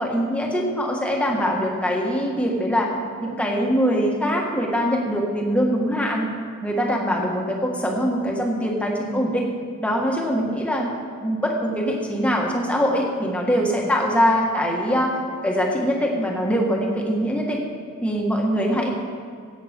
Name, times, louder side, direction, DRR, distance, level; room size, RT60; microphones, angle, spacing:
voice 1, 0.0-2.9 3.2-6.2 6.6-9.5 9.8-10.9 11.2-15.2 15.4-17.6 18.0-18.9, equal, 5° left, -1 dB, 1.6 m, -23 dB
16.5 x 8.0 x 5.3 m, 2.3 s
head